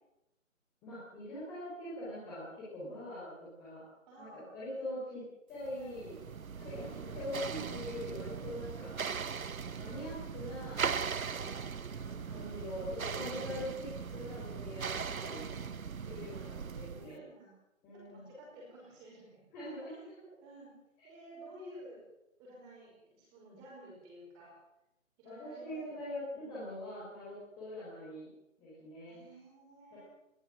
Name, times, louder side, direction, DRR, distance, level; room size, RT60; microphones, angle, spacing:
voice 1, 0.8-3.3 3.6-3.8 4.2-5.2 5.5-6.2 6.5-8.9 9.7-10.9 11.9-15.4 16.0-17.2 17.8-18.3 19.5-20.1 25.2-28.3 28.6-29.2 29.9-30.0, left 1 dB, 10° left, -10 dB, 4.5 m, -43 dB
voice 2, 2.8-3.1 4.1-5.0 5.7-6.0 6.7-7.2 11.4-11.8 15.4-15.7 16.3-16.4 16.8-17.5 17.9-19.4 19.9-20.0 20.4-20.7 21.0-22.0 22.4-24.5 25.2-26.6 29.0-30.0, right 1 dB, 10° right, -3 dB, 5.3 m, -54 dB
sound 1, 5.6-17.1, right 6 dB, 90° right, 1.1 m, -39 dB
21.0 x 17.0 x 7.6 m, 0.87 s
hypercardioid pair, 170°, 40 cm